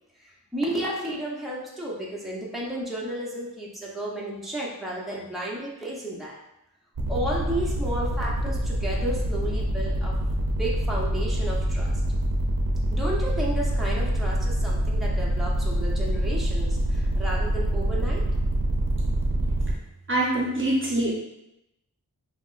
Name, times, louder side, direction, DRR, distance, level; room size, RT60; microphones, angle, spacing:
voice 1, 0.2-6.3 7.1-10.2 10.6-11.9 12.9-18.2, right 1 dB, ahead, -4 dB, 0.8 m, -32 dB
sound 1, 7.0-19.7, right 1 dB, 70° right, 0.7 m, -26 dB
voice 2, 19.0-19.5 20.1-21.1, right 1 dB, 35° right, -4 dB, 0.8 m, -26 dB
5.7 x 2.1 x 2.5 m, 0.86 s
wide cardioid pair, 65°, 37 cm